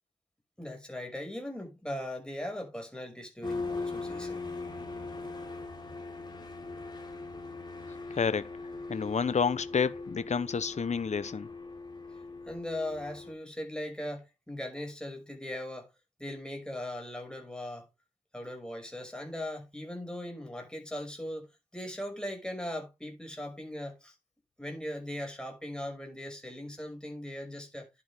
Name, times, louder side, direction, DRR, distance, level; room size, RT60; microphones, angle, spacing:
voice 1, 0.6-4.5 12.4-15.9 16.2-17.9 18.3-24.1 24.6-27.9, left 1 dB, 5° left, 5.5 m, -39 dB
sound 1, 3.4-13.3, left 3 dB, 30° left, 3.1 m, -40 dB
voice 2, 8.1-8.5 8.9-11.5, left 6 dB, 55° left, 0.7 m, -29 dB
11.0 x 9.1 x 3.4 m
wide cardioid pair, 90°, 14 cm